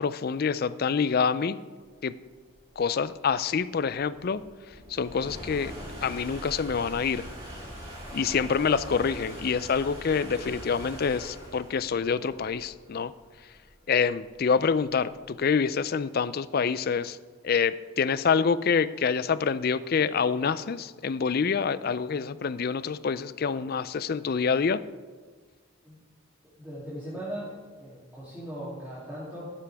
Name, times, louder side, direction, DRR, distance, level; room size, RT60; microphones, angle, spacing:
voice 1, 0.0-1.6 2.0-2.1 2.8-4.4 4.9-5.7 6.0-7.3 8.1-13.1 13.9-17.2 17.4-24.8, left 6 dB, 50° left, 16 dB, 0.4 m, -26 dB
sound 1, 2.1-15.5, equal, 30° right, 3.1 m, -43 dB
voice 2, 26.6-29.5, equal, 10° right, -11 dB, 2.9 m, -39 dB
14.0 x 11.5 x 3.5 m, 1.5 s
head